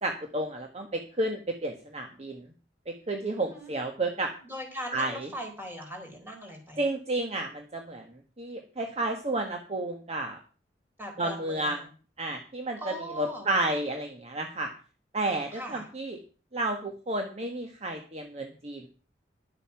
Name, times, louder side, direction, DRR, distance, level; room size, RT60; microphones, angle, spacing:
voice 1, 0.0-2.4 3.1-4.3 4.9-5.3 6.8-8.0 8.4-10.4 11.2-11.8 12.2-14.7 15.1-16.2 16.5-18.9, right 2 dB, 35° right, 3 dB, 1.4 m, -31 dB
voice 2, 3.4-3.7 4.4-6.8 11.0-11.9 12.8-13.5 15.5-15.9, equal, 10° right, 2 dB, 4.2 m, -40 dB
11.5 x 8.1 x 5.9 m, 0.38 s
head